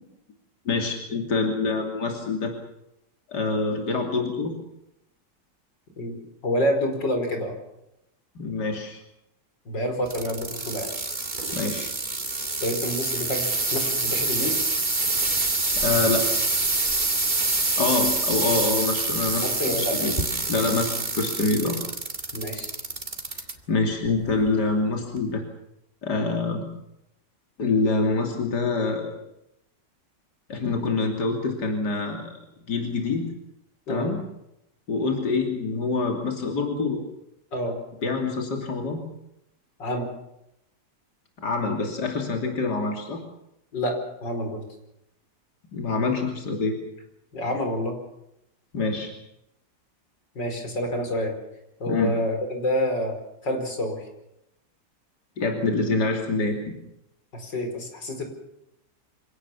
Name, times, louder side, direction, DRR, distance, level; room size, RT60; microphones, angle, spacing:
voice 1, 0.7-2.5 3.3-4.5 8.4-9.0 11.5-11.9 15.8-16.2 17.8-19.5 19.7-20.1 20.5-21.8 23.3-25.4 26.0-26.7 27.6-29.1 30.5-32.3 32.7-33.3 33.9-34.2 34.9-37.0 38.0-39.0 41.4-43.2 45.7-46.8 48.7-49.1 51.9-52.2 55.4-56.8, left 3 dB, 70° left, 2 dB, 3.5 m, -26 dB
voice 2, 6.4-7.5 9.7-10.9 12.6-14.6 19.4-19.9 22.3-22.8 33.9-34.1 37.5-37.8 39.8-40.1 43.7-44.6 47.3-47.9 50.4-51.3 51.8-53.2 53.4-54.0 57.3-58.2, equal, 90° left, 4 dB, 5.6 m, -28 dB
sound 1, 10.1-23.5 24.1-24.5 25.2-25.3, right 3 dB, 25° right, 2.3 m, -26 dB
26.5 x 17.5 x 7.3 m, 0.83 s
omnidirectional pair, 1.9 m